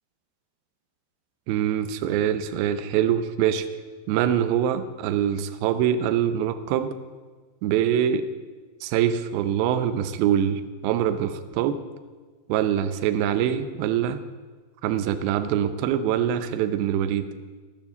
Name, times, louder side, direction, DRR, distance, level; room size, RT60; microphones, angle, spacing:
voice 1, 1.5-3.7 4.1-6.9 7.6-8.2 8.8-11.8 12.5-14.2 14.8-17.3, right 10 dB, 80° right, 9 dB, 2.2 m, -24 dB
12.5 x 9.0 x 6.9 m, 1.4 s
omnidirectional pair, 5.0 m